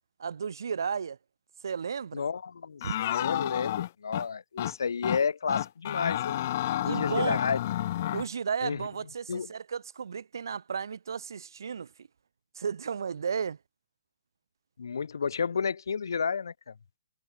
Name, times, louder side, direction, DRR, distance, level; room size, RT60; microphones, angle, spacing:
voice 1, 0.2-1.2 1.6-2.2 2.8-3.0 6.8-7.4 8.1-12.1 12.5-13.6, right 6 dB, 75° right, 1.2 m, -33 dB
voice 2, 2.1-6.5 6.8-7.6 8.6-8.8 9.3-9.5 14.8-16.7, left 6 dB, 85° left, 1.8 m, -31 dB
sound 1, 2.8-4.3 4.6-4.7 5.0-5.2 5.5-8.3, left 13 dB, 35° left, 0.5 m, -31 dB
hypercardioid pair, 170°, 2 cm